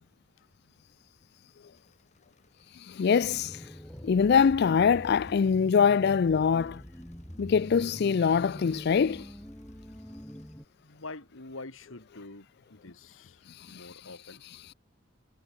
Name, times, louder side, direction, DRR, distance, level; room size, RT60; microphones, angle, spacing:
Engine / Mechanisms, 1.7-10.5, left 3 dB, 35° left, 7.5 m, -68 dB
voice 1, 2.8-3.6 4.0-6.8 7.4-9.3 13.6-13.9, left 6 dB, 55° left, 0.4 m, -24 dB
sound 1, 3.2-10.6, equal, 10° left, 2.4 m, -45 dB
voice 2, 10.8-14.4, left 2 dB, 80° left, 2.8 m, -46 dB
head